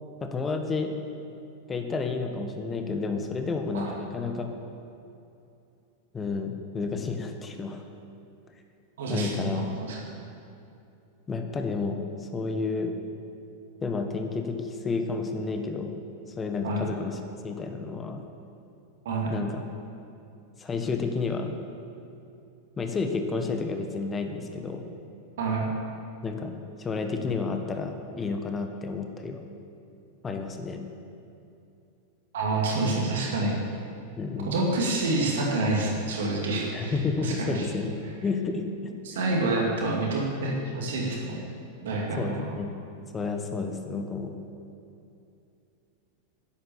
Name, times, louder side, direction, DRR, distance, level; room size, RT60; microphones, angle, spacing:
voice 1, 0.2-0.9 1.7-4.5 6.1-7.8 9.1-9.6 11.3-12.9 13.8-15.9 16.4-17.2 17.4-18.2 19.3-19.6 20.6-21.6 22.8-24.8 26.2-26.5 26.8-29.4 30.2-30.8 34.2-34.5 36.7-38.9 42.2-42.7 43.1-44.3, left 4 dB, 20° left, 5 dB, 1.3 m, -31 dB
voice 2, 9.0-10.0 16.6-16.8 19.0-19.3 25.4-25.7 32.3-33.6 34.4-37.7 39.0-41.4 41.8-42.4, right 2 dB, 60° right, -2 dB, 2.3 m, -28 dB
10.5 x 10.0 x 7.1 m, 2.7 s
figure-of-eight pair, 90°, 0 cm